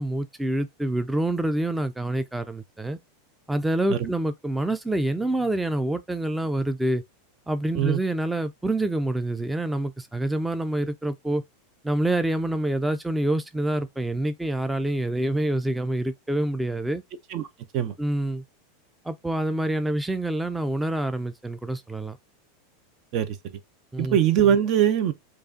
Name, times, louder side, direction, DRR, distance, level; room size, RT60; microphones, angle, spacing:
voice 1, 0.0-3.0 3.5-7.0 7.5-11.4 11.8-17.0 18.0-18.4 19.0-22.2 23.9-24.2, right 1 dB, 5° right, 0.4 m, -26 dB
voice 2, 23.1-23.6 24.0-25.1, right 9 dB, 50° right, 0.6 m, -22 dB
4.7 x 2.4 x 2.6 m
hypercardioid pair, 105°, 0 cm